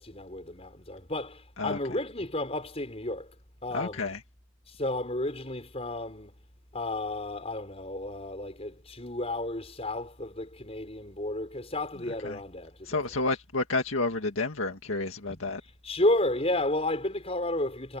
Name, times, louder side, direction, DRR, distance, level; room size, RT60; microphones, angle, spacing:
voice 1, 0.0-3.3 3.6-4.1 4.7-6.4 6.7-13.0 15.8-18.0, left 1 dB, 30° left, 5.6 m, -32 dB
voice 2, 3.7-4.2 12.1-12.4 12.8-15.6, left 3 dB, 90° left, 1.9 m, -30 dB
head